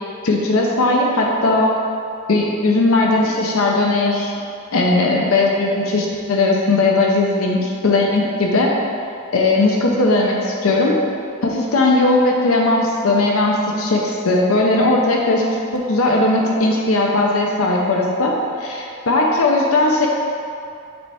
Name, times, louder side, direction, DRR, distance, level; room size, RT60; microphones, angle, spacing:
voice 1, 0.2-1.7 2.3-4.3 4.7-8.7 9.3-11.0 11.4-20.1, left 2 dB, 90° left, -1 dB, 0.7 m, -18 dB
7.8 x 4.3 x 3.5 m, 2.6 s
head